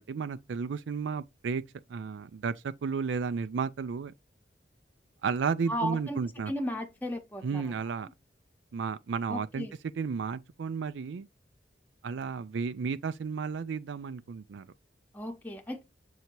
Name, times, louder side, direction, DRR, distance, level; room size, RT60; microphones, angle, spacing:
voice 1, 0.0-1.6 1.9-4.1 5.2-6.5 7.4-8.1 8.7-9.7 10.0-11.3 12.0-14.7, right 5 dB, 90° right, 0.4 m, -33 dB
voice 2, 5.7-6.2 6.5-7.8 9.3-9.7 15.1-15.8, equal, 10° left, 0.7 m, -35 dB
7.9 x 2.8 x 4.4 m
head